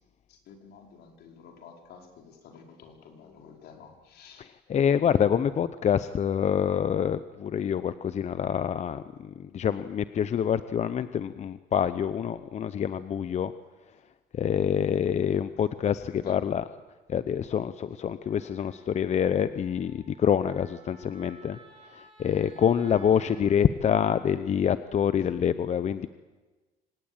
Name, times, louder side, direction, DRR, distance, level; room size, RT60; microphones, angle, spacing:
voice 1, 0.3-4.5 13.9-14.0 15.6-15.7 16.1-16.5 17.9-18.0 20.9-21.0 22.8-23.2 25.2-25.3, left 6 dB, 75° left, 3 dB, 4.8 m, -50 dB
voice 2, 4.4-13.5 14.3-16.6 17.1-21.6 21.9-26.1, left 8 dB, 40° left, 13 dB, 0.7 m, -26 dB
Wind instrument woodwind instrument, 18.2-23.4, right 3 dB, 35° right, 6.4 m, -55 dB
25.5 x 18.5 x 8.9 m, 1.2 s
cardioid pair, 110°, 17 cm